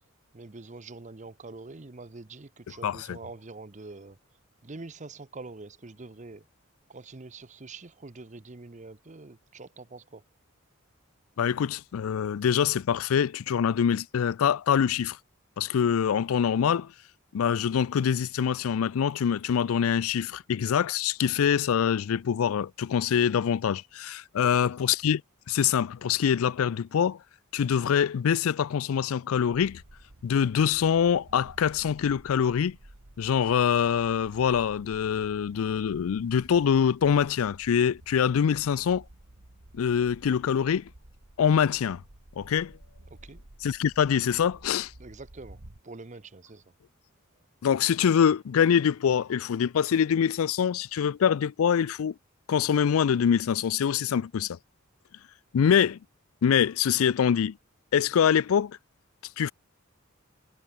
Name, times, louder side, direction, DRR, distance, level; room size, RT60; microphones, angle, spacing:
voice 1, 0.3-4.2 4.6-6.4 6.9-10.2 24.4-24.7 43.1-43.4 45.0-46.7, right 3 dB, 35° right, 0.8 m, -45 dB
voice 2, 2.8-3.2 11.4-15.2 15.6-16.9 17.3-25.2 25.5-27.2 27.5-29.8 30.2-32.8 33.2-39.0 39.7-40.9 41.4-42.0 42.4-42.7 43.6-44.9 47.6-52.1 52.5-54.6 55.5-56.0 56.4-57.6 57.9-58.8 59.4-59.5, left 8 dB, 85° left, 0.4 m, -24 dB
sound 1, 29.5-45.8, right 1 dB, 75° right, 2.2 m, -52 dB
head